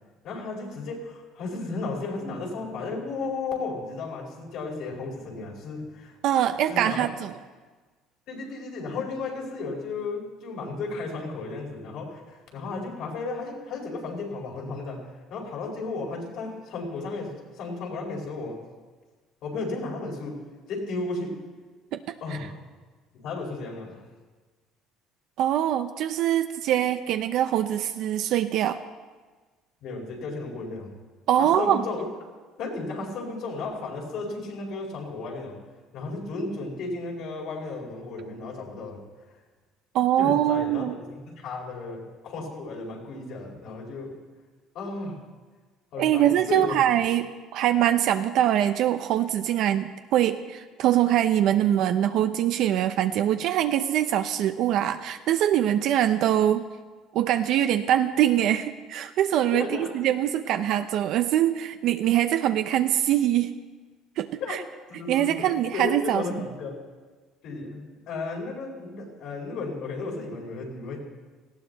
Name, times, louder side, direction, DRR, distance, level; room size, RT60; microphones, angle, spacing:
voice 1, 0.2-7.0 8.3-18.6 19.4-20.4 20.7-21.5 22.2-22.6 23.1-24.0 29.8-30.9 31.4-32.1 32.6-35.6 35.9-39.0 40.2-44.2 44.7-45.2 45.9-46.8 59.5-59.9 64.4-64.6 64.9-66.8 67.4-71.0, left 3 dB, 65° left, -1 dB, 4.8 m, -34 dB
voice 2, 6.2-7.3 21.9-22.0 25.4-28.8 31.3-31.8 39.9-41.0 46.0-56.6 57.1-63.6 64.2-64.3 65.1-66.2, right 11 dB, 65° right, 8 dB, 0.6 m, -23 dB
18.5 x 15.5 x 4.1 m, 1.4 s
cardioid pair, 130°, 0 cm